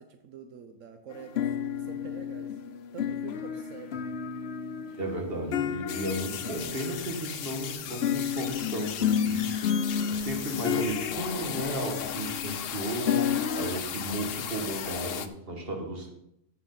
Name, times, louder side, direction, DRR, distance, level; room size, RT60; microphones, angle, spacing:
voice 1, 0.0-2.6 2.9-4.0, right 6 dB, 85° right, 6 dB, 1.2 m, -46 dB
sound 1, 1.1-7.5 8.0-13.8, left 8 dB, 65° left, 0.8 m, -31 dB
voice 2, 5.0-13.2 13.5-16.1, right 1 dB, 50° right, 2 dB, 2.0 m, -34 dB
sound 2, 5.9-15.3, left 9 dB, 90° left, 1.1 m, -37 dB
15.0 x 6.0 x 4.0 m, 0.79 s
omnidirectional pair, 1.3 m